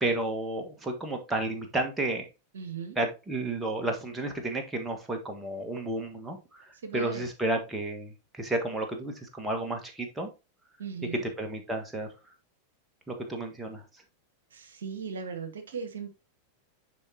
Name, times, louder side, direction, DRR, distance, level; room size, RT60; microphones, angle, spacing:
voice 1, 0.0-2.2 2.9-10.3 11.2-12.1 13.1-13.8, right 2 dB, 10° right, 3 dB, 1.4 m, -32 dB
voice 2, 2.5-3.0 6.8-7.2 10.8-11.2 14.5-16.1, right 5 dB, 65° right, 8 dB, 1.0 m, -37 dB
9.9 x 3.7 x 2.8 m, 0.27 s
figure-of-eight pair, 90°, 0 cm